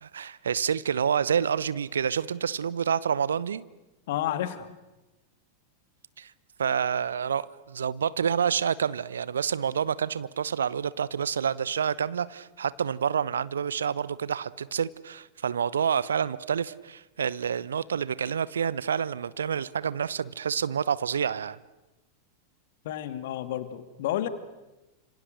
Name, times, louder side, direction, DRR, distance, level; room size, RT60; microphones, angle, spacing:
voice 1, 0.0-3.7 6.2-6.3 6.6-21.6, right 7 dB, 70° right, 0.8 m, -28 dB
voice 2, 4.1-4.7 22.8-24.3, left 12 dB, 55° left, 2.3 m, -30 dB
30.0 x 27.0 x 6.6 m
figure-of-eight pair, 90°, 0 cm